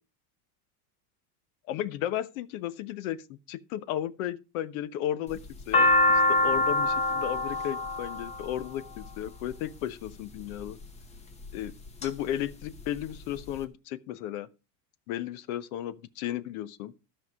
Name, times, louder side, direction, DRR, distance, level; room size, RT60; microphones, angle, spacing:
voice 1, 1.7-5.4 5.7-10.8 11.5-11.7 12.0-14.5 15.1-16.9, left 11 dB, 60° left, 1.0 m, -34 dB
sound 1, 5.3-9.5 10.4-10.8 11.4-12.1 12.4-12.5 12.7-13.5, left 2 dB, 15° left, 0.7 m, -25 dB
13.5 x 5.8 x 4.7 m
supercardioid pair, 160°, 47 cm